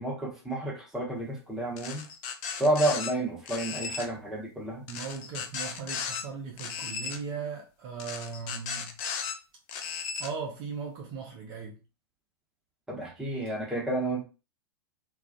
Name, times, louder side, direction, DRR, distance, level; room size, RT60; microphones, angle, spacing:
voice 1, 0.0-2.1 2.6-4.8 12.9-14.3, right 1 dB, 5° right, 0.8 m, -30 dB
sound 1, 1.8-3.1 3.5-4.1 4.9-6.2 6.6-7.2 8.0-9.3 9.7-10.3, left 6 dB, 35° left, 0.4 m, -35 dB
voice 2, 4.9-9.0 10.2-11.8 13.4-13.5, right 6 dB, 35° right, 0.5 m, -38 dB
2.3 x 2.3 x 2.4 m
figure-of-eight pair, 100°, 14 cm